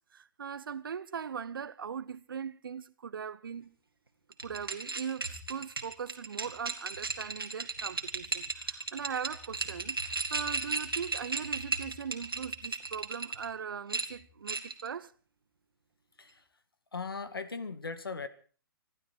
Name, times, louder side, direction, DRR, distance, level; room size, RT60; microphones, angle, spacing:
voice 1, 0.1-3.8 4.4-10.0 10.3-15.1, right 7 dB, 75° right, 0.9 m, -40 dB
sound 1, 4.3-13.5 13.9-14.9, right 3 dB, 90° right, 2.3 m, -36 dB
voice 2, 16.9-18.3, left 4 dB, 85° left, 1.8 m, -38 dB
26.5 x 12.0 x 4.5 m
figure-of-eight pair, 120°, 12 cm